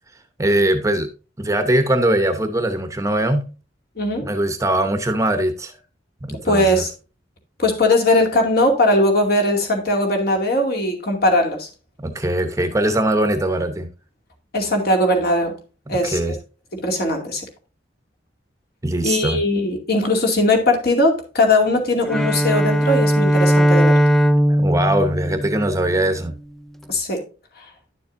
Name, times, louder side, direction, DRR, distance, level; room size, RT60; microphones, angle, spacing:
voice 1, 0.4-1.1 1.4-3.5 4.2-5.8 6.2-6.8 12.0-13.9 15.9-16.4 18.8-19.4 24.5-26.3, right 1 dB, 15° right, 0.8 m, -21 dB
voice 2, 4.0-4.3 6.4-6.9 7.6-11.7 14.5-15.5 15.9-16.2 16.8-17.5 19.0-24.0 26.9-27.2 27.6-27.7, left 1 dB, 55° left, 2.4 m, -19 dB
Bowed string instrument, 22.1-26.3, equal, ahead, 0.3 m, -18 dB
11.0 x 7.0 x 2.6 m
head